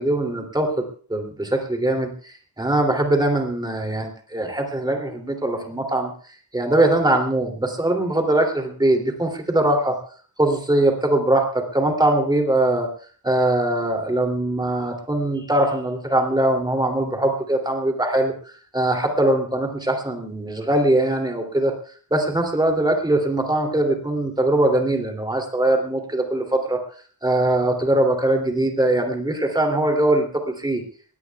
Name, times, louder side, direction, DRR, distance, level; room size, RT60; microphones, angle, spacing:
voice 1, 0.0-6.1 6.5-10.0 10.4-12.9 13.2-18.3 18.7-21.7 22.1-26.8 27.2-30.3 30.6-30.8, right 1 dB, 10° right, 2 dB, 2.8 m, -21 dB
22.0 x 18.0 x 2.3 m, 0.43 s
wide cardioid pair, 145°, 37 cm